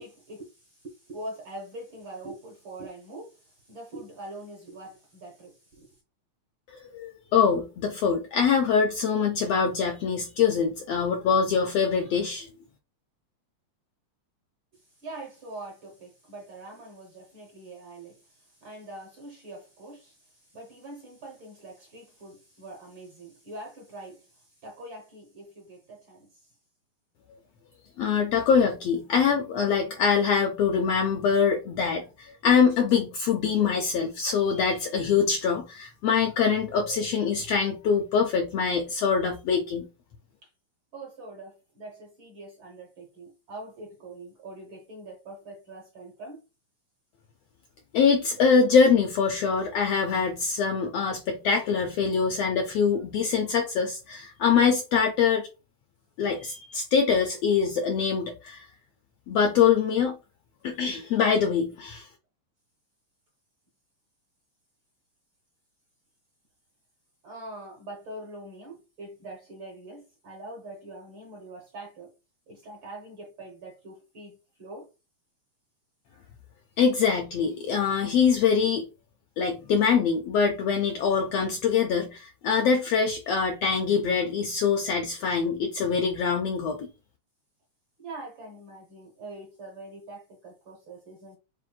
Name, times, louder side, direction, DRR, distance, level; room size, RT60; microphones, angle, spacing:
voice 1, 0.0-5.9 14.7-26.4 40.4-40.5 40.9-46.4 48.3-48.5 67.2-72.1 72.5-74.9 88.0-91.4, right 2 dB, 55° right, 1.4 m, -43 dB
voice 2, 6.7-12.5 28.0-39.9 47.9-55.5 56.2-58.7 59.3-60.2 60.6-62.1 76.8-78.9 79.4-86.9, left 6 dB, 80° left, 1.4 m, -24 dB
7.4 x 2.5 x 2.3 m
omnidirectional pair, 3.4 m